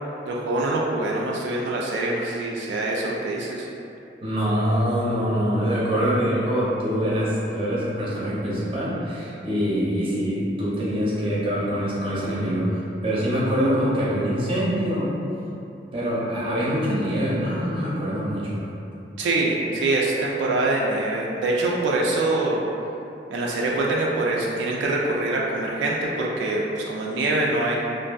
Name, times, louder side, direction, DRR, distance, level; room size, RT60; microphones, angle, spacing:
voice 1, 0.3-3.7 19.2-22.6 23.3-27.8, right 2 dB, 85° right, -3 dB, 0.3 m, -24 dB
voice 2, 4.2-15.1 15.9-18.7, equal, 30° right, -8 dB, 0.6 m, -24 dB
2.5 x 2.5 x 2.2 m, 2.7 s
head